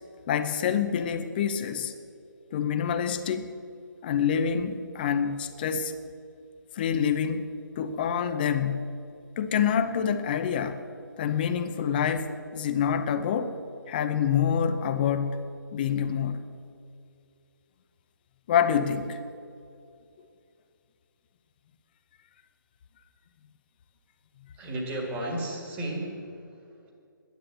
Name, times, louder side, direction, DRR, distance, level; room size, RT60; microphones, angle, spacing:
voice 1, 0.3-1.9 2.5-3.5 4.0-5.9 6.8-7.4 7.8-8.9 9.4-10.8 11.2-13.6 13.9-16.4 18.5-19.2, left 7 dB, 25° left, 10 dB, 0.7 m, -27 dB
voice 2, 24.5-26.9, right 1 dB, 15° right, 0 dB, 1.9 m, -34 dB
11.5 x 10.5 x 7.8 m, 2.5 s
figure-of-eight pair, 150°, 11 cm